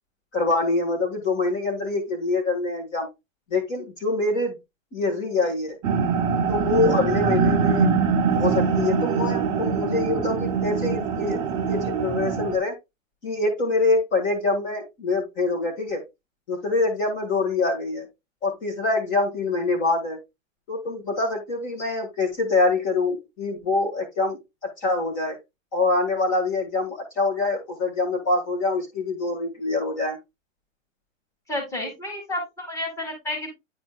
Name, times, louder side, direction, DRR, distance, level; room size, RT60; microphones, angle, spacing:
voice 1, 0.3-3.1 3.5-4.6 4.9-5.8 6.5-7.9 8.3-11.4 11.7-12.7 13.2-16.0 16.5-18.1 18.4-20.2 20.7-25.4 25.7-30.2, left 3 dB, 30° left, 2 dB, 1.7 m, -25 dB
sound 1, 5.8-12.6, right 6 dB, 10° right, 0.5 m, -23 dB
voice 2, 31.5-33.5, left 1 dB, 5° left, 2 dB, 1.9 m, -31 dB
10.0 x 4.2 x 2.3 m, 0.21 s
hypercardioid pair, 160°, 40 cm